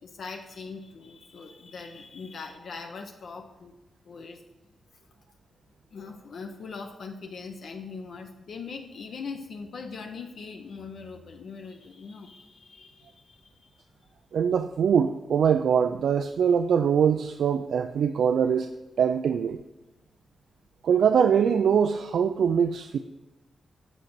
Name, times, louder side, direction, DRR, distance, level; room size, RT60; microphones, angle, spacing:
voice 1, 0.0-3.7 4.1-4.4 5.9-14.1, left 4 dB, 60° left, 3 dB, 0.7 m, -41 dB
voice 2, 14.3-18.7 19.0-19.6 20.8-23.0, right 7 dB, 75° right, 8 dB, 0.4 m, -23 dB
9.1 x 5.3 x 6.0 m, 1.0 s
wide cardioid pair, 150°, 0 cm